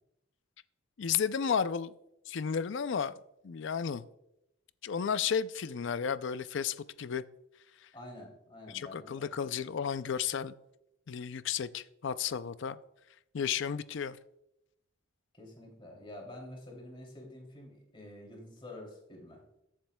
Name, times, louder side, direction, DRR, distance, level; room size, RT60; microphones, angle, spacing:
voice 1, 1.0-1.9 2.3-3.1 3.4-4.0 4.8-7.2 8.7-10.5 11.1-12.8 13.3-14.2, left 7 dB, 60° left, 0.4 m, -33 dB
voice 2, 7.9-9.3 15.4-19.4, left 1 dB, 25° left, 2.8 m, -48 dB
21.0 x 7.5 x 2.3 m
head